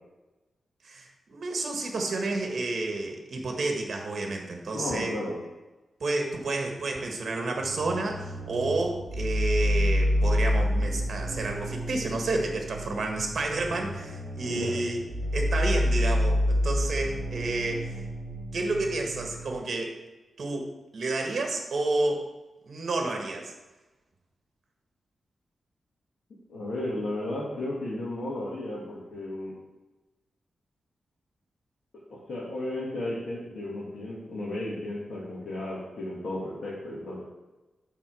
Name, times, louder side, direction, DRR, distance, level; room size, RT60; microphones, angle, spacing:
voice 1, 0.8-5.1 6.0-15.0 15.3-18.0 18.5-19.9 20.4-22.3 22.7-23.5, right 2 dB, 55° right, 3 dB, 1.5 m, -30 dB
voice 2, 4.7-5.3 14.5-14.7 26.5-29.5 32.3-37.3, left 1 dB, 65° left, -7 dB, 2.0 m, -34 dB
sound 1, 7.6-19.5, left 1 dB, ahead, 1.7 m, -29 dB
7.5 x 4.3 x 6.3 m, 1.1 s
wide cardioid pair, 130°, 0 cm